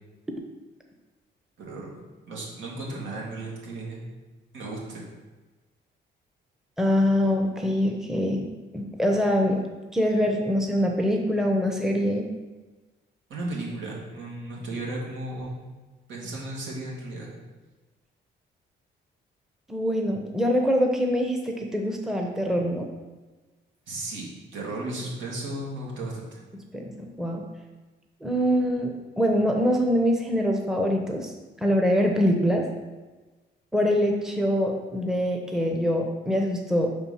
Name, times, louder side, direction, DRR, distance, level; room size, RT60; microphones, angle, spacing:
voice 1, 1.6-2.0 2.3-4.0 4.5-5.1 13.3-15.6 16.1-17.3 23.9-26.4, right 2 dB, 75° right, -3 dB, 2.0 m, -35 dB
voice 2, 6.8-8.5 8.7-9.6 9.9-12.3 19.7-22.9 26.7-27.4 28.2-31.3 31.6-32.7 33.7-36.9, equal, ahead, 2 dB, 0.8 m, -24 dB
5.0 x 4.4 x 5.6 m, 1.2 s
cardioid pair, 90°, 20 cm